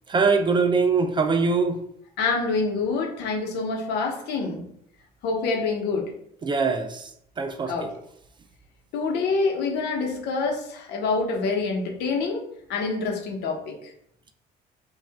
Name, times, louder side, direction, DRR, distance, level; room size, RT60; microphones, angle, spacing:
voice 1, 0.1-1.8 6.4-7.0 7.4-7.9, right 4 dB, 30° right, 7 dB, 0.5 m, -22 dB
voice 2, 2.2-4.7 5.2-6.1 7.7-7.9 8.9-12.4 12.7-13.8, left 4 dB, 80° left, 1 dB, 1.0 m, -26 dB
4.7 x 2.5 x 3.5 m, 0.70 s
cardioid pair, 110°, 17 cm